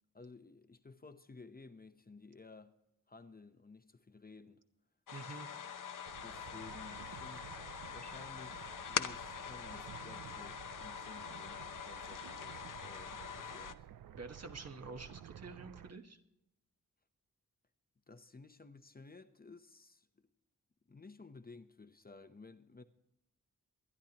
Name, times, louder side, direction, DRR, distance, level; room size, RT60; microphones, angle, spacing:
voice 1, 0.1-2.7 3.1-4.6 6.2-7.6 7.9-13.9 18.1-20.3 20.9-22.8, left 3 dB, 25° left, 0.7 m, -55 dB
sound 1, 5.1-13.7, left 7 dB, 70° left, 0.7 m, -43 dB
voice 2, 5.1-5.5 14.1-16.2, right 3 dB, 50° right, 1.3 m, -48 dB
sound 2, 6.1-15.9, right 11 dB, 80° right, 0.5 m, -53 dB
23.5 x 11.0 x 2.9 m
wide cardioid pair, 105°, 33 cm